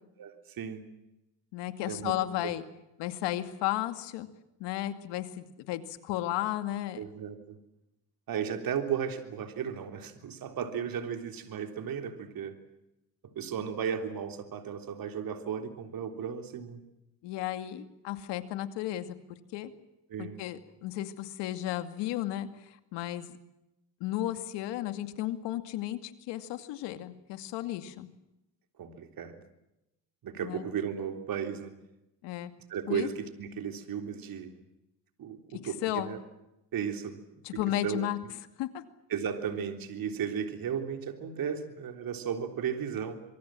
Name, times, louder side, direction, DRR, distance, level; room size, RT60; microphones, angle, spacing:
voice 1, 0.2-0.8 1.9-2.1 7.0-7.4 8.3-12.6 13.3-16.8 20.1-20.4 28.8-29.3 30.2-31.7 32.7-34.5 35.2-36.2 36.7-37.2 37.8-38.3 39.1-43.2, right 7 dB, 55° right, 6 dB, 3.6 m, -35 dB
voice 2, 1.5-2.6 3.0-4.3 4.6-7.0 17.2-19.7 20.2-23.3 24.0-28.1 30.4-30.6 32.2-32.5 32.9-33.1 35.5-36.1 37.4-38.2 38.6-38.8, left 14 dB, 80° left, 9 dB, 2.4 m, -34 dB
25.5 x 24.0 x 7.7 m, 0.90 s
cardioid pair, 100°, 41 cm